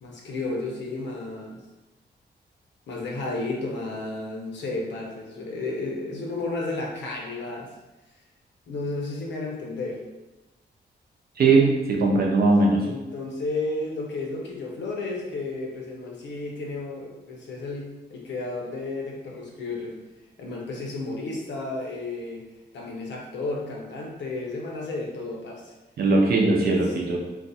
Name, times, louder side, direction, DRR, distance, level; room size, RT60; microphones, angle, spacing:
voice 1, 0.0-1.6 2.9-7.7 8.7-10.0 12.8-20.0 20.4-22.5 22.7-25.7, left 2 dB, 85° left, -1 dB, 0.7 m, -32 dB
voice 2, 11.4-12.9 26.0-27.2, right 3 dB, 60° right, -1 dB, 0.6 m, -20 dB
2.5 x 2.3 x 4.0 m, 1.1 s
wide cardioid pair, 170°, 18 cm